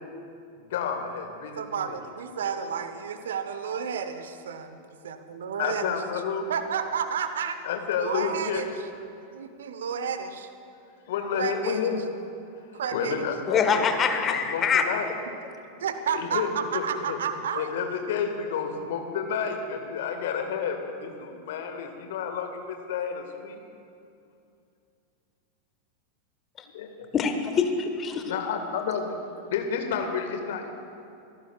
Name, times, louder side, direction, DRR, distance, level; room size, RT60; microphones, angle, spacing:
voice 1, 0.7-2.0 5.6-6.5 7.6-8.7 11.1-12.0 12.7-15.1 16.1-17.2 17.5-23.6 26.7-27.1 28.3-29.2 29.5-30.7, left 6 dB, 55° left, 5 dB, 1.7 m, -30 dB
voice 2, 1.6-6.0 6.5-7.6 8.0-8.7 9.3-10.5 11.4-11.8 12.7-13.3 15.8-17.7, right 7 dB, 65° right, 10 dB, 0.8 m, -31 dB
voice 3, 13.5-14.8 27.1-28.2, left 6 dB, 25° left, 6 dB, 1.2 m, -24 dB
25.5 x 15.0 x 2.4 m, 2.6 s
figure-of-eight pair, 90°, 0 cm